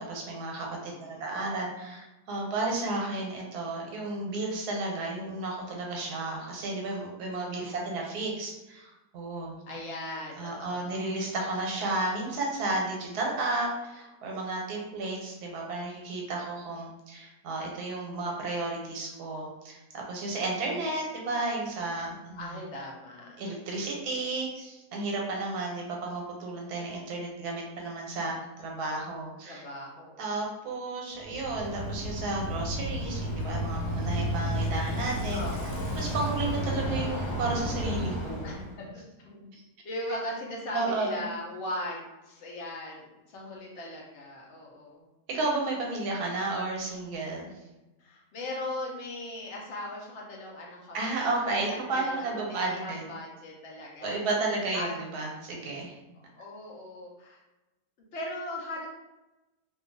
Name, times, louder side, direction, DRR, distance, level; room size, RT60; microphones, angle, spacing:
voice 1, 0.0-9.5 10.4-22.5 23.4-29.6 30.2-35.4 36.0-38.5 39.5-39.6 40.7-41.3 45.3-47.5 50.9-53.0 54.0-56.0, right 2 dB, 80° right, -1 dB, 1.2 m, -32 dB
voice 2, 0.8-1.5 7.4-8.0 9.7-11.1 22.4-23.4 29.4-30.3 35.3-36.1 38.4-39.4 39.8-45.0 48.0-54.1 54.7-55.0 56.1-57.4 58.1-58.9, left 1 dB, 60° left, -2 dB, 0.8 m, -39 dB
Bicycle, 31.2-38.7, equal, 85° left, 1.4 m, -32 dB
2.8 x 2.4 x 2.5 m, 1.0 s
omnidirectional pair, 1.7 m